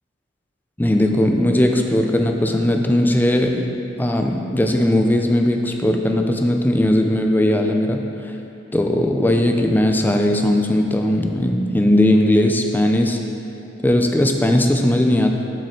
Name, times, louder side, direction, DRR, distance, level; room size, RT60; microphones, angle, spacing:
voice 1, 0.8-3.7 4.0-8.3 8.7-13.2 13.8-15.3, left 1 dB, 10° left, 3 dB, 0.4 m, -18 dB
7.3 x 5.4 x 4.3 m, 2.8 s
head